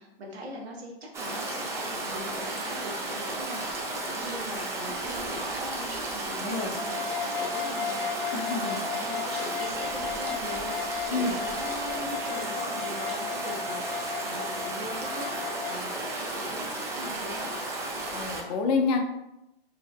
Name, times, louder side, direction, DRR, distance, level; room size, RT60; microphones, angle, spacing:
voice 1, 0.0-17.5, equal, 85° right, 0 dB, 1.1 m, -41 dB
Stream, 1.1-18.4, right 2 dB, 10° right, 0.3 m, -34 dB
voice 2, 6.4-6.7 8.3-8.8 11.1-11.4 18.1-19.0, left 4 dB, 40° left, 3 dB, 0.7 m, -28 dB
sound 1, 6.8-15.8, left 7 dB, 85° left, 0.5 m, -35 dB
4.2 x 2.7 x 2.3 m, 0.88 s
hypercardioid pair, 120°, 31 cm